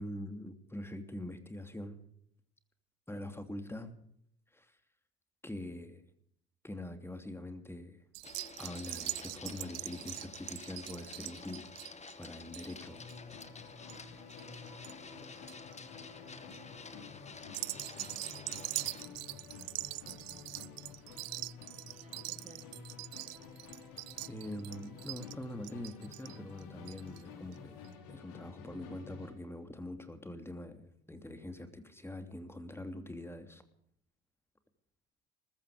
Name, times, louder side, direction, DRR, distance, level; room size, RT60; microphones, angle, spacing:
voice 1, 0.0-2.0 3.1-3.9 4.5-4.8 5.4-6.0 6.6-8.0 8.6-11.7 12.2-13.0 24.3-27.7 28.1-33.6, left 1 dB, 10° left, 8 dB, 2.9 m, -44 dB
sound 1, 8.1-14.9 15.2-15.7 16.3-16.6 17.4-27.2 27.5-27.6 27.8-27.9, right 21 dB, 60° right, 0.5 m, -43 dB
Printer, 8.2-19.0, left 4 dB, 25° left, 2.0 m, -50 dB
Musical instrument, 12.8-29.4, left 5 dB, 75° left, 4.2 m, -51 dB
voice 2, 19.6-22.7, right 4 dB, 25° right, 5 dB, 2.6 m, -63 dB
20.5 x 14.0 x 5.1 m, 0.66 s
hypercardioid pair, 75°, 29 cm